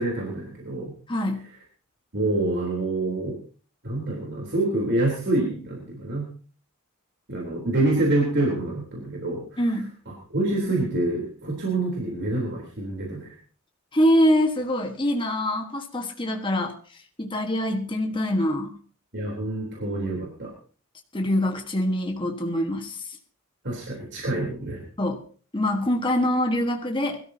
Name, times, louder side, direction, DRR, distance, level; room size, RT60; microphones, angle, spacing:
voice 1, 0.0-0.9 2.1-3.4 3.8-6.3 7.3-9.6 10.1-13.3 19.1-20.5 23.6-24.8, right 2 dB, 60° right, -2 dB, 3.6 m, -26 dB
voice 2, 1.1-1.5 9.6-9.9 13.9-16.7 17.2-18.7 21.1-23.1 25.0-25.2 25.5-27.2, left 1 dB, 25° left, 3 dB, 1.5 m, -24 dB
21.5 x 13.5 x 2.8 m, 0.40 s
head